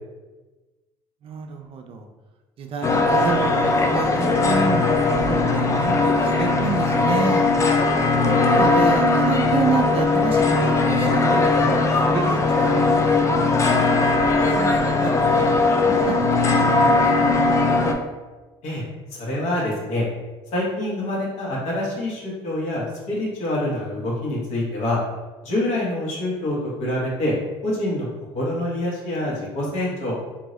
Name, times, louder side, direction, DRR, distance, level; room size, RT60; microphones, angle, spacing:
voice 1, 1.2-2.1 2.6-7.5 8.2-16.2 16.4-17.3, right 5 dB, 50° right, 4 dB, 0.5 m, -29 dB
sound 1, 2.8-17.9, left 3 dB, 25° left, 0.4 m, -19 dB
voice 2, 19.2-20.0 20.5-25.0 25.4-27.3 27.6-28.1 28.3-30.2, left 1 dB, 65° left, -5 dB, 1.2 m, -26 dB
2.7 x 2.6 x 3.1 m, 1.2 s
supercardioid pair, 95°, 12 cm